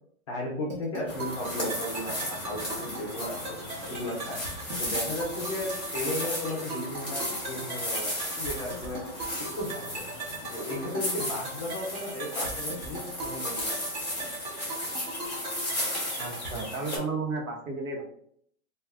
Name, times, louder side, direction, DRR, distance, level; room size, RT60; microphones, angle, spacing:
voice 1, 0.3-3.6 3.9-4.4 4.8-8.1 8.4-9.0 9.4-10.1 10.5-13.9, left 1 dB, 25° left, -3 dB, 0.4 m, -35 dB
sound 1, 0.7-16.7, right 2 dB, 35° right, 0.7 m, -40 dB
sound 2, 1.1-17.0, left 1 dB, 5° left, 0.8 m, -35 dB
voice 2, 16.2-18.0, right 3 dB, 75° right, 1 dB, 1.1 m, -33 dB
2.4 x 2.3 x 3.4 m, 0.66 s
hypercardioid pair, 155°, 42 cm